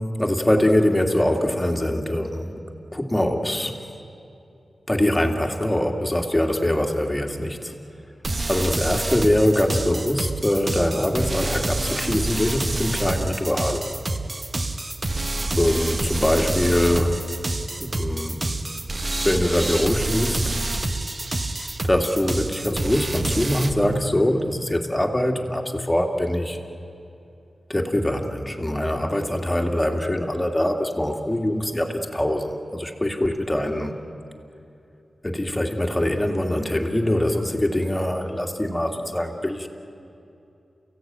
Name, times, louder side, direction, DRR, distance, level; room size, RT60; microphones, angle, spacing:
voice 1, 0.0-2.5 2.9-3.8 4.9-7.7 8.5-13.9 15.5-17.2 17.8-18.5 19.2-20.6 21.8-26.6 27.7-33.9 35.2-39.7, left 1 dB, 10° left, 2 dB, 2.4 m, -23 dB
sound 1, 8.2-23.7, right 2 dB, 35° right, 1.2 m, -27 dB
30.0 x 16.5 x 9.2 m, 2.7 s
wide cardioid pair, 100°, 0 cm